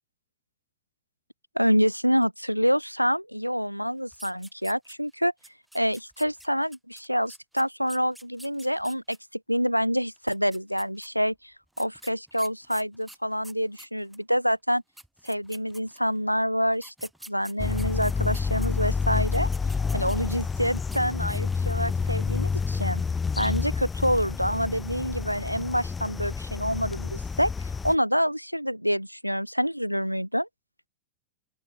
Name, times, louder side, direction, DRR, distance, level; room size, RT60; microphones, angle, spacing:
voice 1, 1.6-5.3 5.7-9.2 9.5-14.8 15.2-16.9 17.3-19.5 19.9-23.0 23.4-30.5, equal, 90° right, 0.3 m, -27 dB
sound 1, 4.1-5.1 5.4-9.2 10.2-11.1 11.7-14.2 14.7-14.8 15.0-16.2 16.7-18.7 19.2-20.5 20.8-21.0 21.3-21.7, right 1 dB, 5° right, 5.4 m, -48 dB
sound 2, 17.6-28.0, left 5 dB, 15° left, 0.6 m, -29 dB
open air
figure-of-eight pair, 90°, 0 cm